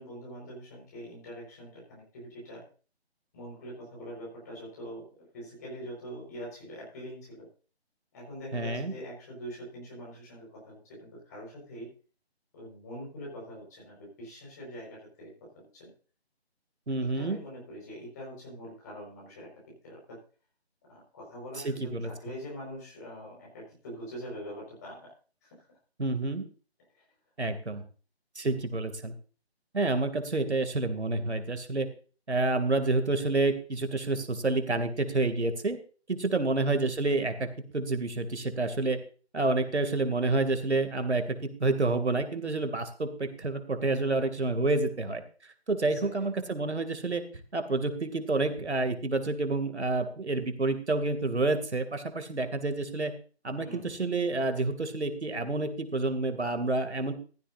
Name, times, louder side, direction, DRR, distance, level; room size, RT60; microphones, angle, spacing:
voice 1, 0.0-2.6 3.3-5.0 5.3-7.5 8.1-11.9 12.5-15.9 17.0-20.2 20.9-25.1 25.4-25.5 26.9-27.0 27.7-27.8 28.5-28.6 45.8-46.3 53.6-54.1, equal, 15° left, -3 dB, 4.9 m, -44 dB
voice 2, 8.5-8.9 16.9-17.4 21.6-22.1 26.0-26.4 27.4-27.8 28.4-29.1 29.7-31.9 32.3-35.8 36.1-37.5 37.7-39.0 39.3-45.2 45.7-47.2 47.5-53.1 53.4-57.1, right 3 dB, 85° right, 8 dB, 2.7 m, -29 dB
15.0 x 13.5 x 2.7 m, 0.38 s
figure-of-eight pair, 170°, 33 cm